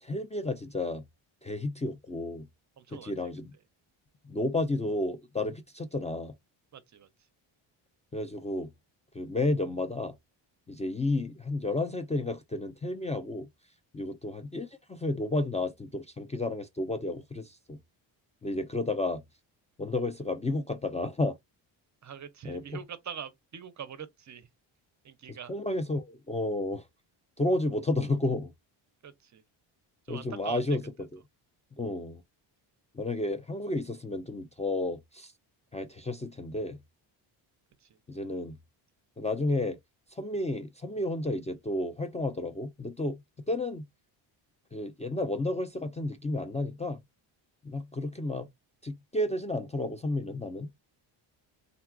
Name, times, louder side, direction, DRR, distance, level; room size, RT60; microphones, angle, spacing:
voice 1, 0.0-1.0 1.4-2.5 2.9-3.5 4.2-6.3 8.1-8.7 9.1-10.1 10.7-13.5 13.9-17.8 18.4-19.2 19.8-21.4 22.4-22.6 25.3-26.9 27.4-28.5 30.1-31.2 31.8-32.2 32.9-35.3 35.7-36.8 38.1-38.6 39.2-39.8 40.1-43.2 43.5-43.8 44.7-47.0 47.6-48.5 48.8-50.7, left 2 dB, 15° left, 0.4 m, -32 dB
voice 2, 2.8-3.1 6.7-7.1 22.0-24.5 25.0-25.5 29.0-29.4 30.1-30.6 37.8-38.0, right 8 dB, 35° right, 0.5 m, -43 dB
3.7 x 2.3 x 2.3 m
cardioid pair, 80°, 49 cm